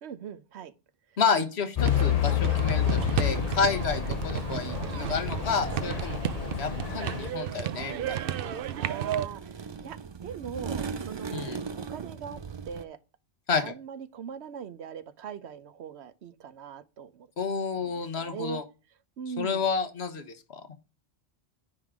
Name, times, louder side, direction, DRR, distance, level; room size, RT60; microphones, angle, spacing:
voice 1, 0.0-0.7 4.0-4.2 8.7-11.5 11.9-12.4 12.7-13.0 13.6-17.3 17.8-18.6 19.2-19.6, right 7 dB, 90° right, 1.0 m, -41 dB
voice 2, 1.2-6.2 6.6-8.2 8.4-8.6 11.3-11.6 13.5-13.7 17.4-18.6 19.4-20.6, left 5 dB, 80° left, 1.5 m, -30 dB
Truck / Idling, 1.8-7.3, left 10 dB, 45° left, 0.6 m, -29 dB
sound 1, 1.8-9.3, right 10 dB, 65° right, 0.7 m, -33 dB
sound 2, 7.5-12.8, right 5 dB, 45° right, 0.4 m, -39 dB
9.5 x 3.8 x 4.8 m
omnidirectional pair, 1.1 m